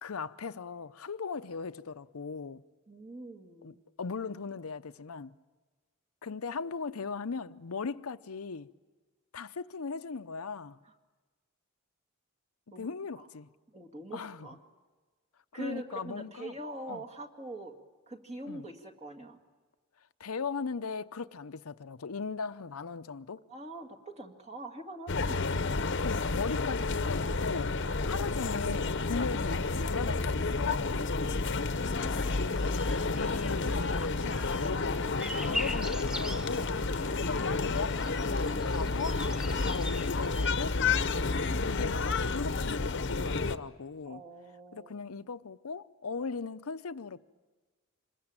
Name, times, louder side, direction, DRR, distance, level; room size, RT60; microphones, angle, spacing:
voice 1, 0.0-2.6 3.6-5.4 6.2-8.7 9.3-10.8 12.8-13.5 14.1-14.5 15.5-16.5 16.9-17.0 18.5-18.7 20.2-23.4 26.0-31.0 33.1-36.8 37.2-39.2 39.6-40.8 41.6-44.2 44.7-47.2, left 5 dB, 90° left, 0.7 m, -38 dB
voice 2, 2.9-3.8 10.8-10.9 12.7-12.9 13.2-13.3 13.7-14.6 15.5-17.8 18.1-19.4 23.5-25.5 27.9-28.2 44.1-44.9, right 1 dB, 30° right, 2.1 m, -44 dB
sound 1, 25.1-43.6, left 3 dB, 55° left, 0.9 m, -30 dB
sound 2, 32.0-40.5, left 1 dB, 5° right, 0.9 m, -42 dB
26.5 x 21.0 x 8.9 m
head